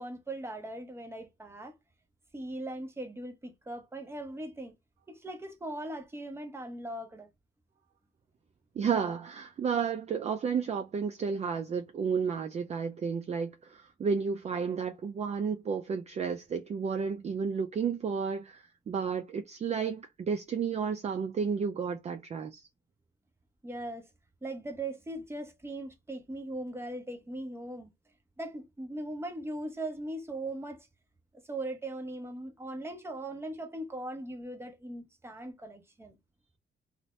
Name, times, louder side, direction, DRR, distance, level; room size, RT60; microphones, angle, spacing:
voice 1, 0.0-1.7 2.3-4.7 5.1-7.3 23.6-24.1 24.4-27.9 28.4-30.9 31.5-36.1, right 1 dB, 10° right, 0.8 m, -39 dB
voice 2, 8.8-22.7, right 6 dB, 35° right, 0.4 m, -32 dB
2.5 x 2.1 x 3.0 m
cardioid pair, 90°, 20 cm